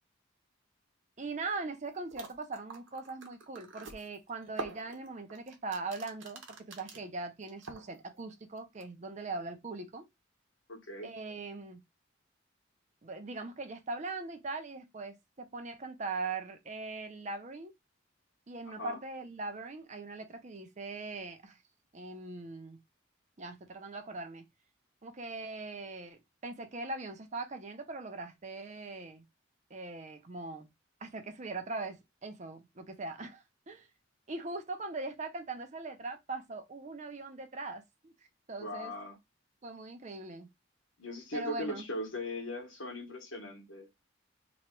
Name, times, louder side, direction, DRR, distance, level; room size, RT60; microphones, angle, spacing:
voice 1, 1.2-10.1 11.0-11.8 13.0-17.7 18.5-21.6 21.9-22.8 23.4-24.4 25.0-29.2 29.7-30.7 31.0-33.9 34.3-38.1 38.5-38.9 39.6-40.5 41.3-41.9, right 3 dB, 40° right, 0.6 m, -41 dB
sound 1, 1.8-1.9 2.1-7.0 7.4-8.2 8.6-8.9, right 3 dB, 85° right, 0.9 m, -45 dB
voice 2, 10.7-11.1 18.7-19.0 38.6-39.2 41.0-43.9, left 1 dB, 90° left, 1.3 m, -39 dB
3.0 x 2.4 x 4.3 m
head